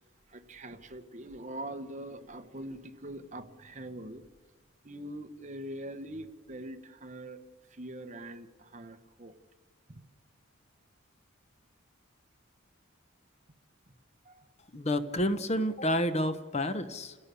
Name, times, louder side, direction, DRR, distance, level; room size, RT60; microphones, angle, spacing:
voice 1, 0.3-4.2 4.8-7.4 7.7-9.3 14.2-14.4, right 1 dB, 35° right, 8 dB, 1.3 m, -43 dB
voice 2, 14.7-17.1, left 1 dB, 30° left, 11 dB, 1.0 m, -29 dB
29.0 x 17.5 x 7.0 m, 1.4 s
head